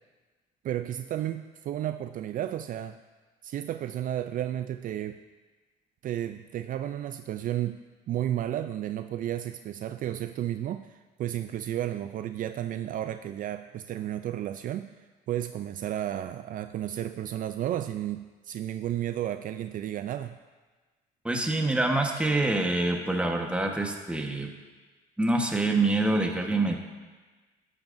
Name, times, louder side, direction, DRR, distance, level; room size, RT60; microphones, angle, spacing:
voice 1, 0.6-3.0 3.4-5.2 6.0-20.4, right 12 dB, 55° right, 9 dB, 0.4 m, -33 dB
voice 2, 21.2-24.5 25.2-26.8, right 2 dB, 5° right, 2 dB, 1.2 m, -26 dB
11.5 x 10.5 x 2.6 m, 1.3 s
cardioid pair, 110°, 17 cm